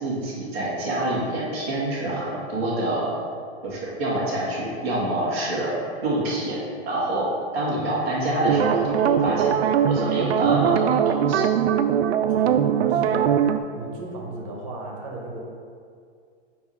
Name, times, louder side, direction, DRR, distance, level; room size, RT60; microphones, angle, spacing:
voice 1, 0.0-3.1 3.6-6.6 6.9-7.3 7.5-9.5 9.8-11.4, right 1 dB, 10° right, -12 dB, 0.4 m, -26 dB
sound 1, 8.4-13.6, right 9 dB, 75° right, 0.5 m, -21 dB
voice 2, 12.4-13.4 13.8-15.4, right 1 dB, 30° right, -1 dB, 0.9 m, -35 dB
8.1 x 2.7 x 4.9 m, 2.3 s
supercardioid pair, 175°, 33 cm